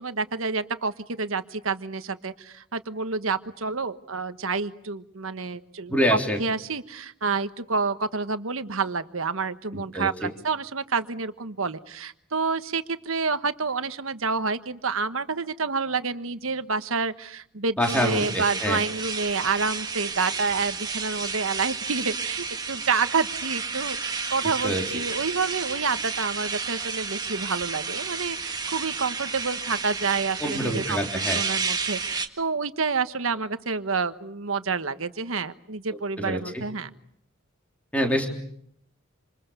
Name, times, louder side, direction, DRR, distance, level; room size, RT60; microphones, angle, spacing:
voice 1, 0.0-36.9, right 4 dB, 75° right, 10 dB, 1.3 m, -28 dB
voice 2, 5.9-6.4 9.7-10.1 17.8-18.8 24.6-24.8 30.4-31.4 36.2-36.6 37.9-38.3, equal, 5° left, 1 dB, 3.4 m, -26 dB
sound 1, 17.8-32.3, right 5 dB, 20° right, 1.6 m, -31 dB
27.5 x 27.5 x 6.9 m, 0.69 s
head